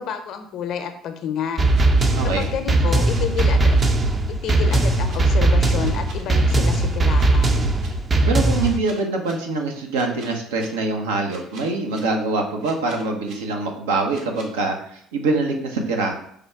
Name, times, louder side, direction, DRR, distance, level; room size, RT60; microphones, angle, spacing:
voice 1, 0.0-1.6 2.2-3.8 4.3-7.7, left 8 dB, 60° left, 7 dB, 0.7 m, -29 dB
sound 1, 1.6-8.8, right 2 dB, 30° right, 0.5 m, -19 dB
sound 2, 1.7-2.4 3.1-3.8 4.4-5.2 5.8-6.5 7.1-7.9 8.6-9.3 9.9-10.7 11.3-12.0 12.6-13.3 14.1-14.5, right 2 dB, 70° right, 1.2 m, -43 dB
voice 2, 2.1-2.5 8.2-16.1, right 3 dB, 85° right, 3 dB, 0.7 m, -24 dB
5.1 x 2.2 x 4.6 m, 0.67 s
hypercardioid pair, 65°, 0 cm